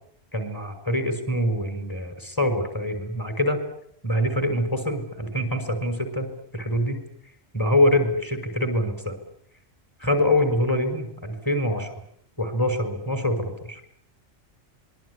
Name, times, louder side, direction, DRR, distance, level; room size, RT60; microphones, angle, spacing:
voice 1, 0.3-3.6 4.0-7.0 7.5-9.2 10.0-11.9 12.4-13.9, left 1 dB, 15° left, 8 dB, 5.8 m, -25 dB
26.0 x 22.0 x 9.9 m, 0.69 s
omnidirectional pair, 1.3 m